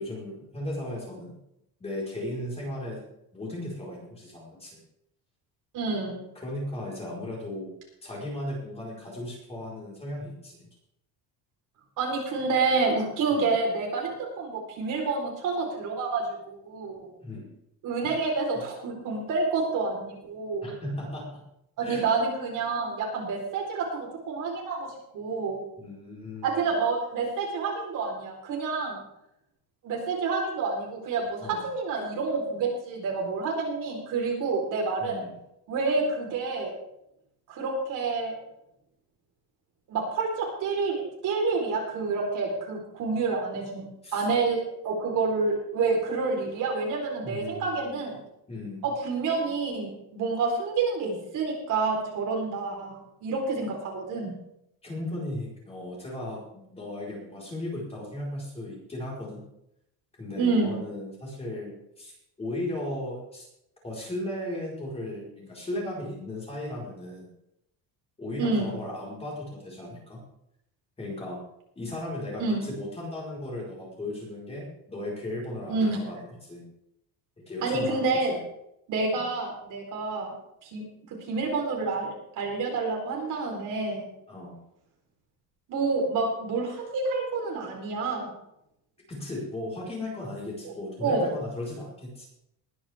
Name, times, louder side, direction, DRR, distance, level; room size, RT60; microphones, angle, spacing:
voice 1, 0.0-1.4 1.8-3.0 3.3-4.8 6.3-7.7 8.0-10.6 13.3-13.5 17.2-17.5 18.5-18.6 20.6-21.4 21.8-22.2 25.8-26.6 31.4-31.6 35.0-35.3 44.0-44.2 47.2-48.0 48.5-48.8 54.8-56.4 56.7-59.4 60.2-63.5 63.8-67.3 68.2-70.2 71.0-71.4 71.7-76.6 77.5-78.4 84.3-84.6 89.1-92.3, left 1 dB, 15° left, -4 dB, 4.6 m, -36 dB
voice 2, 5.7-6.2 12.0-17.1 17.8-20.7 21.9-25.6 26.4-29.0 29.8-35.2 35.7-36.7 37.5-38.3 39.9-43.8 44.1-48.2 48.8-54.3 60.4-60.8 68.4-68.7 72.4-72.6 75.7-76.1 77.6-78.4 78.9-80.3 80.6-80.8 81.3-84.1 85.7-88.3 91.0-91.3, right 4 dB, 50° right, 0 dB, 4.2 m, -28 dB
20.5 x 10.0 x 3.6 m, 0.79 s
cardioid pair, 175°, 38 cm